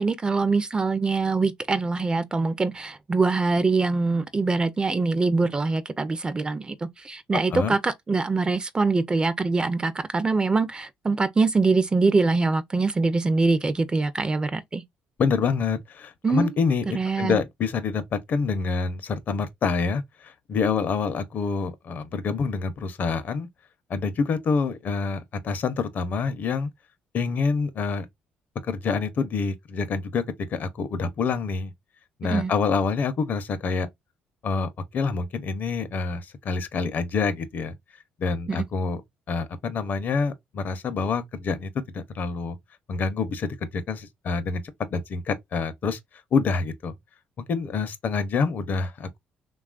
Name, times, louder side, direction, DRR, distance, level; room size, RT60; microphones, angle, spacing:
voice 1, 0.0-14.8 16.2-16.5 16.9-17.4 32.3-32.5 38.5-38.7, right 3 dB, 25° right, 0.4 m, -24 dB
voice 2, 15.2-23.5 23.9-26.7 27.1-28.1 28.6-30.2 30.5-31.7 32.2-33.9 34.4-37.7 38.2-39.0 39.3-42.6 42.9-44.6 44.9-46.0 46.3-46.9 47.4-49.2, left 5 dB, 55° left, 0.6 m, -27 dB
3.1 x 2.3 x 2.3 m
supercardioid pair, 80°, 4 cm